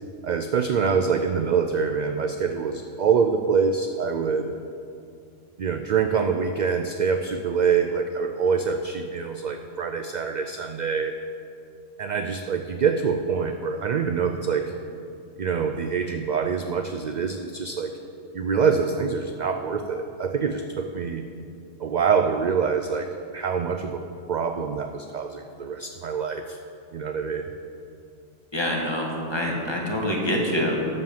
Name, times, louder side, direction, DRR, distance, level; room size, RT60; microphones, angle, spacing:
voice 1, 0.2-4.6 5.6-11.2 12.0-14.7 15.4-18.0 18.3-21.2 21.8-24.0 24.3-26.6 26.9-27.5, right 6 dB, 65° right, 7 dB, 0.4 m, -25 dB
voice 2, 28.5-30.8, equal, 20° left, -2 dB, 1.6 m, -25 dB
12.5 x 5.3 x 7.3 m, 2.6 s
omnidirectional pair, 1.3 m